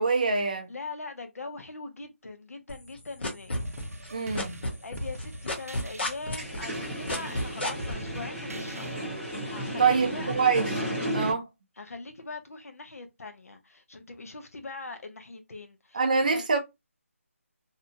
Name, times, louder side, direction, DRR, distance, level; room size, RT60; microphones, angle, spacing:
voice 1, 0.0-0.7 4.1-4.6 9.8-10.7 11.1-11.5 15.9-16.6, right 5 dB, 30° right, 0.4 m, -25 dB
voice 2, 0.7-3.5 4.8-8.9 9.5-10.4 11.8-16.4, left 3 dB, 75° left, 0.7 m, -41 dB
sound 1, 2.7-4.1 4.3-7.9, left 1 dB, 45° left, 0.9 m, -30 dB
sound 2, 3.6-9.2, right 1 dB, 80° right, 0.6 m, -42 dB
sound 3, 6.2-11.3, equal, 5° left, 0.8 m, -34 dB
2.7 x 2.1 x 2.7 m
figure-of-eight pair, 170°, 8 cm